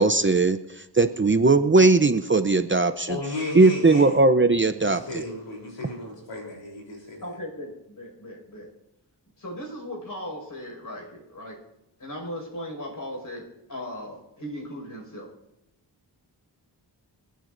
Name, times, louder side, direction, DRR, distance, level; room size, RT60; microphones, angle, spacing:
voice 1, 0.0-3.2 3.5-5.2, right 3 dB, 25° right, 10 dB, 0.7 m, -19 dB
voice 2, 3.1-4.2 4.9-7.3, left 2 dB, 85° left, -1 dB, 3.9 m, -34 dB
voice 3, 7.2-8.7 9.4-11.6 12.0-15.3, left 1 dB, 50° left, 0 dB, 5.8 m, -37 dB
26.5 x 9.2 x 2.7 m, 0.89 s
cardioid pair, 45°, 43 cm